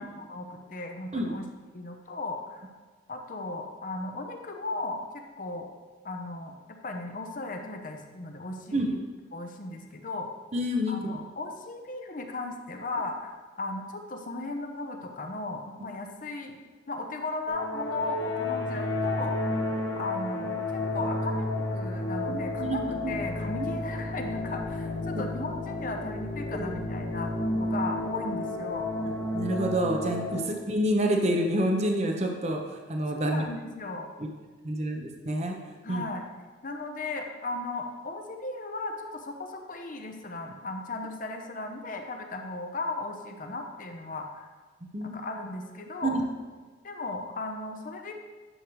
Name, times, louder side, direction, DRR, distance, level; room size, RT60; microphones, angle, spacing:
voice 1, 0.0-1.5 1.7-2.7 3.1-5.0 5.4-5.7 6.0-9.0 9.3-10.3 10.9-16.6 16.9-19.5 19.9-28.9 30.3-30.6 33.1-34.1 35.8-36.2 36.6-44.5 45.0-46.2 46.8-48.1, left 2 dB, 45° left, 4 dB, 0.7 m, -36 dB
voice 2, 10.5-11.0 22.3-23.1 23.6-23.7 26.5-26.7 27.5-27.7 29.1-33.5 34.2-34.3 34.6-35.6 35.9-36.0 44.9-45.2 46.0-46.2, right 1 dB, 35° right, 2 dB, 0.8 m, -28 dB
sound 1, 17.5-30.4, left 2 dB, 85° left, 1.2 m, -31 dB
10.0 x 6.4 x 3.1 m, 1.4 s
head